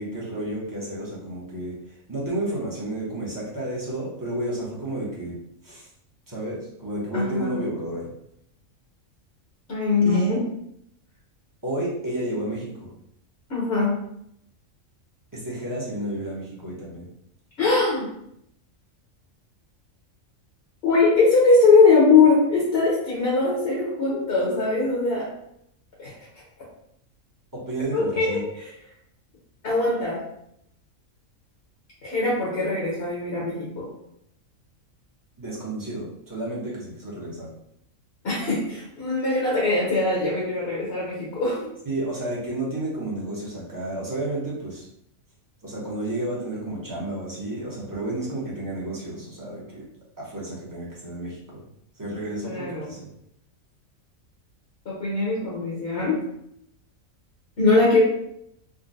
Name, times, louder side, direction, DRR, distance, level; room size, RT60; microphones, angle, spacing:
voice 1, 0.0-1.8 2.1-5.4 5.6-5.9 6.3-8.1 10.0-10.3 11.6-12.9 15.3-17.1 27.5-28.4 35.4-37.5 41.9-44.8 45.6-49.9 50.2-51.7 52.0-53.1, right 1 dB, 20° right, -7 dB, 0.6 m, -31 dB
voice 2, 7.1-7.6 9.7-10.4 13.5-14.0 17.6-18.1 20.8-25.3 26.0-26.1 27.9-28.7 29.6-30.2 32.0-33.9 38.2-41.7 52.4-52.9 54.8-56.2 57.6-58.0, left 3 dB, 50° left, -5 dB, 1.0 m, -21 dB
3.7 x 2.1 x 2.6 m, 0.76 s
omnidirectional pair, 1.4 m